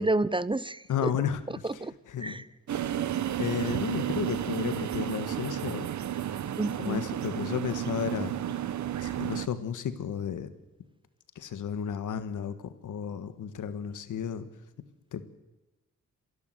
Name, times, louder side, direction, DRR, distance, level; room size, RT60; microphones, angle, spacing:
voice 1, 0.0-1.1 1.5-1.9 2.2-2.5 6.6-7.0, right 2 dB, 15° right, 18 dB, 0.6 m, -30 dB
voice 2, 0.9-1.4 2.1-2.4 3.1-5.9 6.8-8.3 9.0-10.5 11.3-14.5 15.1-15.2, left 8 dB, 85° left, 12 dB, 1.6 m, -33 dB
sound 1, 2.7-9.5, right 11 dB, 70° right, 0.9 m, -32 dB
27.0 x 12.0 x 7.9 m, 1.1 s
cardioid pair, 80°, 30 cm